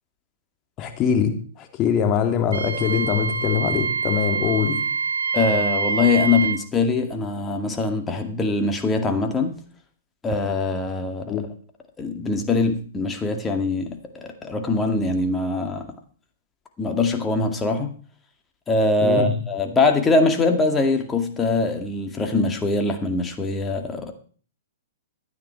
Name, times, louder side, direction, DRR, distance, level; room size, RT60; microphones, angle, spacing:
voice 1, 0.8-4.8 11.3-11.5 19.0-19.3, left 7 dB, 30° left, 5 dB, 2.8 m, -23 dB
Wind instrument woodwind instrument, 2.5-6.6, right 5 dB, 90° right, 1.2 m, -25 dB
voice 2, 5.3-9.5 10.2-11.4 12.0-15.9 16.8-17.9 18.7-24.1, left 3 dB, 15° left, 5 dB, 2.2 m, -22 dB
13.0 x 9.6 x 4.7 m, 0.42 s
hypercardioid pair, 125°, 0 cm